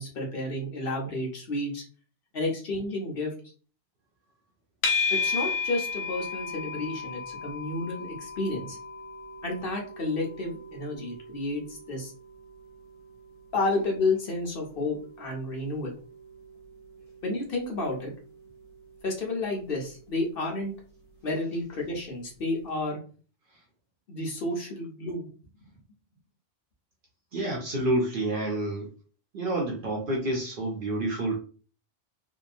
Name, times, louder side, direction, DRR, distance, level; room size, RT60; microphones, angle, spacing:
voice 1, 0.0-1.8 2.3-3.3 5.2-8.8 9.4-12.1 13.5-15.9 17.2-18.1 19.0-20.7 21.2-23.0 24.1-25.3, left 2 dB, 55° left, 0.9 m, -31 dB
sound 1, 4.8-22.0, left 4 dB, 85° left, 1.0 m, -37 dB
voice 2, 27.3-28.9 29.3-31.4, right 1 dB, 60° right, 0.6 m, -28 dB
2.8 x 2.2 x 2.4 m
omnidirectional pair, 1.2 m